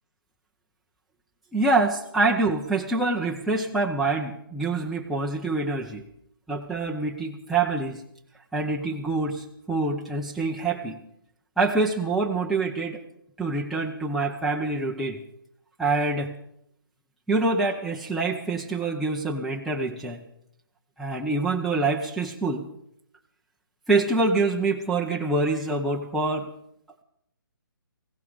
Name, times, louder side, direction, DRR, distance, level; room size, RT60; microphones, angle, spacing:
voice 1, 1.5-6.0 6.5-8.0 8.5-11.0 11.6-13.0 13.4-15.2 15.8-16.3 17.3-20.2 21.0-22.7 23.9-26.5, right 3 dB, ahead, -3 dB, 0.7 m, -25 dB
17.0 x 16.0 x 5.1 m, 0.74 s
hypercardioid pair, 150°, 12 cm